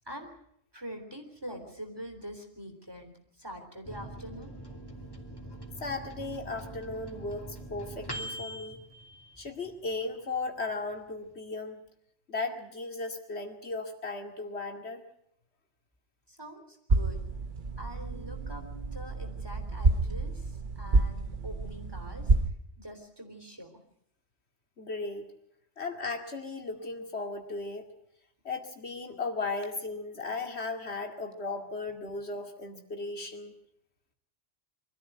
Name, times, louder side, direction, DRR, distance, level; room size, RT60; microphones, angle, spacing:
voice 1, 0.7-4.8 16.3-17.2 17.8-18.6 18.9-22.3 22.8-23.8, equal, 20° right, 4 dB, 3.6 m, -44 dB
Microwave oven, 3.8-9.9 10.3-10.4 10.7-11.3, right 1 dB, 20° left, 2.8 m, -43 dB
voice 2, 5.8-8.8 9.4-11.8 12.3-15.0 24.8-25.3 25.8-27.9 28.4-33.5, left 3 dB, 75° left, 4 dB, 2.6 m, -36 dB
sound 1, 16.9-22.5, right 3 dB, 50° right, 1.3 m, -29 dB
24.0 x 14.0 x 9.2 m, 0.75 s
omnidirectional pair, 1.1 m